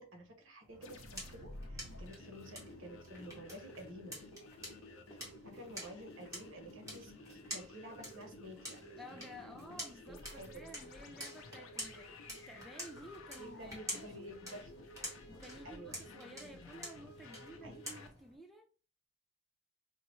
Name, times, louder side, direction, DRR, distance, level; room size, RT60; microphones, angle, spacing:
voice 1, 0.0-4.2 5.4-8.8 9.1-9.2 9.5-9.8 10.1-10.7 13.4-14.7 15.6-16.2 17.4-17.8, equal, 65° right, 0.9 m, -51 dB
sound 1, 0.6-18.3, equal, 15° right, 1.2 m, -49 dB
sound 2, 0.7-14.2, right 3 dB, 40° right, 1.5 m, -63 dB
sound 3, 0.8-18.1, left 2 dB, 75° left, 0.6 m, -53 dB
voice 2, 9.0-14.3 15.3-18.7, equal, ahead, 0.3 m, -53 dB
4.5 x 2.0 x 3.1 m
head